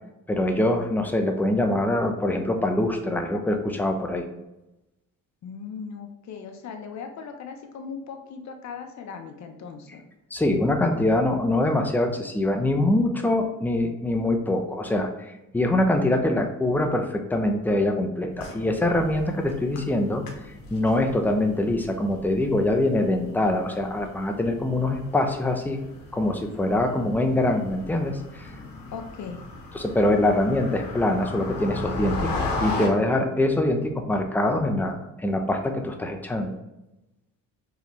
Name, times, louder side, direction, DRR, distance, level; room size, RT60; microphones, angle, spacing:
voice 1, 0.3-4.2 10.3-20.2 20.7-25.8 26.1-28.5 29.7-36.5, left 1 dB, 5° left, 4 dB, 0.6 m, -24 dB
voice 2, 5.4-10.0 28.9-29.5, left 6 dB, 55° left, 4 dB, 0.8 m, -38 dB
sound 1, 18.3-32.9, left 3 dB, 75° left, 1.1 m, -36 dB
4.6 x 3.4 x 3.1 m, 0.95 s
supercardioid pair, 80°, 34 cm